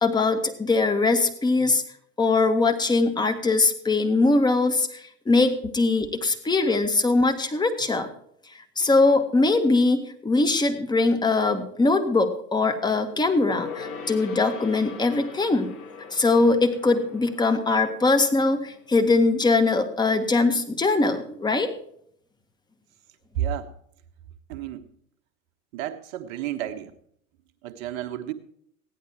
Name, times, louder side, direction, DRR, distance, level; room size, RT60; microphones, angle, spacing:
voice 1, 0.0-1.8 2.2-8.1 8.8-15.7 16.1-21.7, left 3 dB, 10° left, 7 dB, 1.2 m, -22 dB
Gong, 13.4-19.3 19.6-19.7, left 5 dB, 35° left, 1.7 m, -40 dB
voice 2, 23.3-23.7 24.5-24.9 25.7-26.9 27.6-28.3, right 11 dB, 45° right, 7 dB, 1.2 m, -31 dB
15.0 x 10.5 x 4.6 m, 0.68 s
figure-of-eight pair, 80°, 40 cm